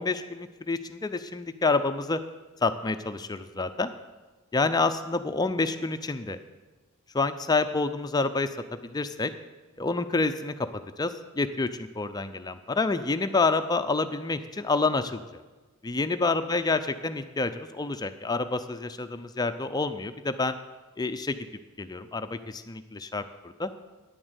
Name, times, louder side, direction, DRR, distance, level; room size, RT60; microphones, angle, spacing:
voice 1, 0.0-2.2 2.6-3.9 4.5-6.4 7.1-8.5 8.8-9.3 9.8-10.5 11.0-11.7 12.0-15.2 15.8-20.6 21.0-21.4 21.8-23.7, left 3 dB, 20° left, 9 dB, 0.5 m, -28 dB
10.0 x 7.6 x 8.0 m, 1.3 s
head